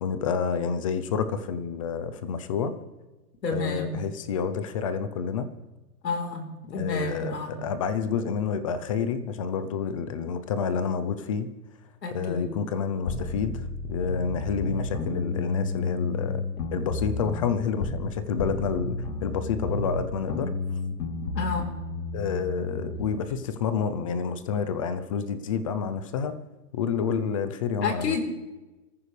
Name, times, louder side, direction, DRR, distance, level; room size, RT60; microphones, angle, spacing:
voice 1, 0.0-2.7 3.5-5.5 6.8-11.5 12.1-16.4 16.7-20.5 22.1-26.4 26.7-28.2, left 6 dB, 20° left, 12 dB, 0.6 m, -29 dB
voice 2, 3.4-4.0 6.0-6.4 6.7-7.5 12.0-12.5 21.3-21.7 27.8-28.2, left 4 dB, 85° left, 3 dB, 4.2 m, -30 dB
sound 1, 13.1-18.1 18.4-23.2, left 3 dB, 70° left, 3.2 m, -32 dB
26.0 x 14.5 x 3.3 m, 1.1 s
hypercardioid pair, 160°, 48 cm